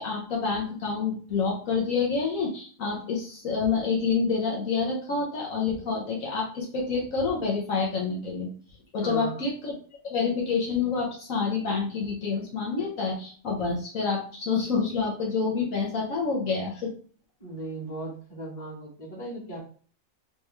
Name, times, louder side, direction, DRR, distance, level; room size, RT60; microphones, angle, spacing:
voice 1, 0.0-8.5 8.9-9.7 10.0-16.9, left 5 dB, 70° left, -2 dB, 1.2 m, -28 dB
voice 2, 9.0-9.4 17.4-19.6, right 2 dB, 15° left, -6 dB, 1.6 m, -37 dB
3.4 x 3.1 x 3.3 m, 0.43 s
omnidirectional pair, 1.5 m